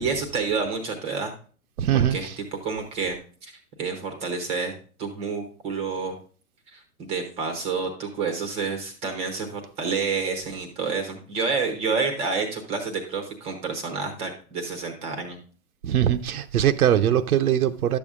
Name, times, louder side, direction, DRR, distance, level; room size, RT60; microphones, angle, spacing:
voice 1, 0.0-1.3 1.9-2.3 2.6-3.2 3.4-3.5 3.8-4.7 5.0-6.2 6.7-15.4, right 4 dB, 15° right, 0.7 m, -29 dB
voice 2, 1.8-2.4 15.8-18.0, right 10 dB, 75° right, 0.7 m, -21 dB
11.5 x 7.0 x 2.4 m
hypercardioid pair, 150°, 45 cm